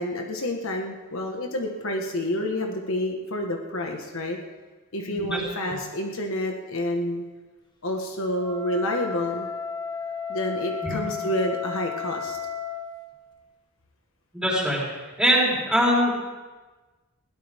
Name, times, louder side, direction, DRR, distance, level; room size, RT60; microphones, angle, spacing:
voice 1, 0.0-4.4 4.9-7.2 7.8-9.5 10.3-12.4, left 1 dB, 65° left, 2 dB, 1.5 m, -29 dB
voice 2, 5.1-5.4 10.8-11.0 14.3-14.8 15.2-16.1, equal, 5° right, -5 dB, 4.5 m, -22 dB
Wind instrument woodwind instrument, 8.3-12.9, left 6 dB, 20° left, 1.5 m, -33 dB
21.0 x 17.0 x 3.6 m, 1.3 s
head